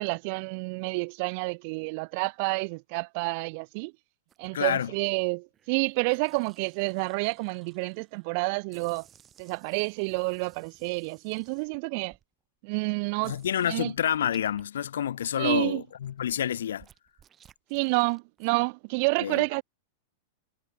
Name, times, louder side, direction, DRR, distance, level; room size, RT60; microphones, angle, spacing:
voice 1, 0.0-3.9 4.4-9.1 9.4-12.2 12.6-13.4 13.6-13.9 15.4-15.8 17.7-19.6, right 32 dB, 50° right, 0.4 m, -29 dB
sound 1, 4.3-4.8 5.5-8.3 8.7-12.2 12.7-12.8 13.2-14.6 15.0-18.5, right 9 dB, 25° right, 4.7 m, -59 dB
voice 2, 4.5-4.9 13.2-16.9 19.2-19.4, left 10 dB, 90° left, 1.1 m, -28 dB
hypercardioid pair, 135°, 0 cm